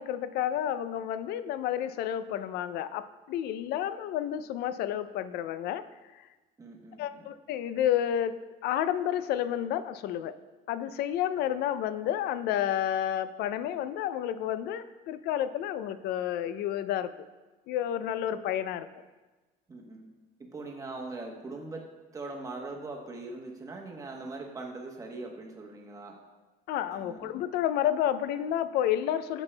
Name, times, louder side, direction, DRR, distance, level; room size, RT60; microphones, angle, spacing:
voice 1, 0.0-5.8 7.0-10.4 10.7-17.1 17.7-18.9 26.7-29.4, left 10 dB, 65° left, 13 dB, 0.4 m, -30 dB
voice 2, 6.6-7.3 19.7-20.1 20.4-21.8 22.1-26.2 26.9-27.3, right 3 dB, 20° right, 1 dB, 1.0 m, -41 dB
9.7 x 6.0 x 2.2 m, 1.2 s
cardioid pair, 140°, 17 cm